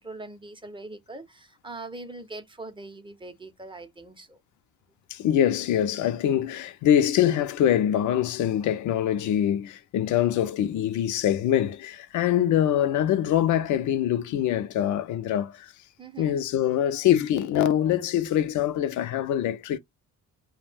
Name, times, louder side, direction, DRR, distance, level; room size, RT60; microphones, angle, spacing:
voice 1, 0.0-4.4 16.0-16.4, right 2 dB, 15° right, 0.5 m, -41 dB
voice 2, 5.1-15.7 16.2-19.8, left 10 dB, 75° left, 0.5 m, -24 dB
2.3 x 2.1 x 3.3 m
cardioid pair, 90°, 30 cm